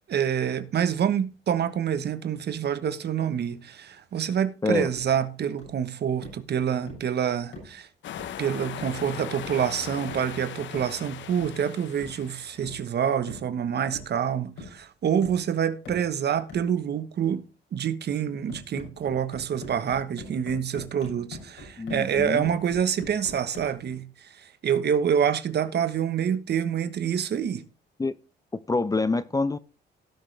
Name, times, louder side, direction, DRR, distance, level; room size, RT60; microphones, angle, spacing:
voice 1, 0.1-7.9 8.4-17.4 17.7-27.6, right 8 dB, 55° right, 1.2 m, -27 dB
sound 1, 4.9-5.2 5.6-5.8 6.2-6.5 6.9-7.1 7.5-7.8 8.2-8.4 8.8-9.1 9.4-9.7 10.1-10.4 10.7-11.0 11.4-11.6 12.0-12.2 12.6-12.9 13.3-13.5 13.9-14.3 14.6-14.8 15.2-15.5 15.9-16.1 16.5-16.7 18.5-23.8, left 2 dB, 85° left, 7.5 m, -43 dB
sound 2, 8.0-12.8, left 10 dB, 70° left, 0.8 m, -39 dB
voice 2, 21.8-22.4 28.0-28.1 28.7-29.6, left 3 dB, 20° left, 0.6 m, -26 dB
17.0 x 6.3 x 3.4 m
cardioid pair, 90°, 20 cm